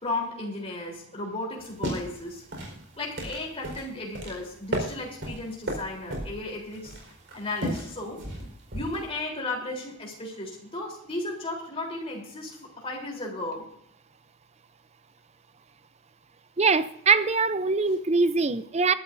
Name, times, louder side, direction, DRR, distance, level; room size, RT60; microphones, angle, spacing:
voice 1, 0.0-2.4 3.0-7.0 7.3-8.2 8.7-13.7, left 2 dB, 25° left, 3.7 m, -34 dB
sound 1, 1.6-9.1, right 1 dB, 55° right, 4.6 m, -35 dB
voice 2, 16.6-18.9, right 4 dB, 30° right, 0.5 m, -23 dB
21.5 x 12.5 x 2.7 m
head